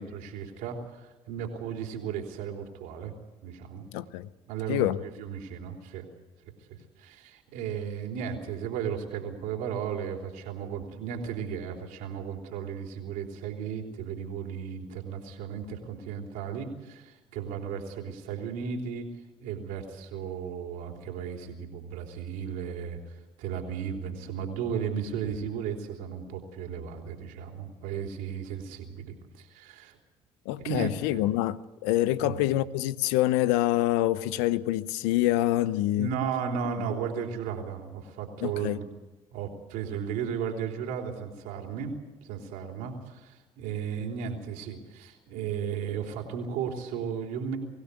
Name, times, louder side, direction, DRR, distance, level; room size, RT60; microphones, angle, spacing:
voice 1, 0.0-3.1 3.4-3.9 4.5-6.1 6.7-19.1 19.4-30.0 30.6-31.2 32.1-32.4 36.0-38.8 39.3-41.9 42.2-47.6, right 7 dB, 80° right, 3.5 m, -35 dB
voice 2, 3.9-4.3 4.7-5.0 30.5-36.1 38.4-38.8, left 15 dB, 85° left, 0.8 m, -26 dB
24.0 x 16.0 x 8.4 m
hypercardioid pair, 65°, 14 cm